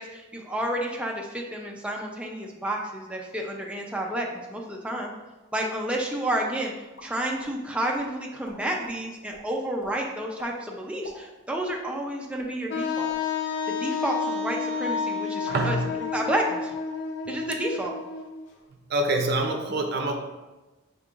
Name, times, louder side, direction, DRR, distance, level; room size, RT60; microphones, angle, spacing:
voice 1, 0.0-5.1 5.5-6.7 7.0-13.1 13.7-16.7 17.3-18.0, right 1 dB, 5° right, -1 dB, 0.5 m, -30 dB
sound 1, 6.9-7.5 7.9-8.1 8.4-9.0 9.3-9.4 9.8-9.9 10.4-10.5 10.9-12.1 12.4-12.5 12.9-13.2, left 1 dB, 85° left, 0.8 m, -46 dB
Wind instrument woodwind instrument, 12.7-18.5, left 5 dB, 60° left, 0.6 m, -30 dB
voice 2, 15.5-16.0 18.9-20.1, right 2 dB, 55° right, 3 dB, 0.6 m, -25 dB
5.3 x 3.7 x 2.4 m, 1.1 s
head